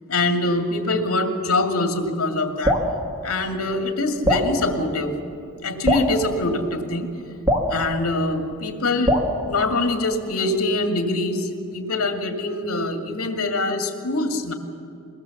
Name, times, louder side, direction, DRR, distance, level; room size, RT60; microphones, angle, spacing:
voice 1, 0.1-2.8 3.2-5.1 5.6-7.1 7.7-9.2 9.5-14.5, left 2 dB, 70° left, 4 dB, 2.2 m, -24 dB
Drip, 2.6-2.9 4.2-4.5 5.8-6.1 7.4-7.7 9.1-9.3, equal, 15° right, 1.9 m, -20 dB
22.5 x 19.0 x 7.2 m, 2.5 s
head